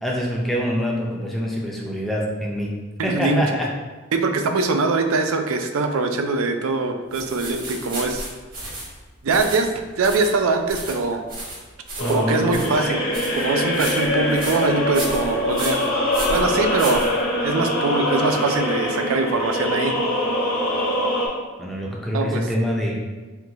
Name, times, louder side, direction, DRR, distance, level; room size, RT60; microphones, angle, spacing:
voice 1, 0.0-2.8 3.0-3.7 12.0-12.6 21.6-23.0, equal, ahead, -3 dB, 0.5 m, -25 dB
voice 2, 3.0-3.6 4.1-8.3 9.2-9.7 10.0-11.2 12.1-13.0 13.3-16.0 16.3-17.1 17.4-19.9 22.1-22.4, right 3 dB, 75° right, 6 dB, 0.4 m, -22 dB
sound 1, 7.1-17.6, right 2 dB, 45° right, 1.1 m, -34 dB
sound 2, 12.0-21.3, left 1 dB, 70° left, 1.0 m, -23 dB
4.5 x 2.3 x 3.8 m, 1.3 s
head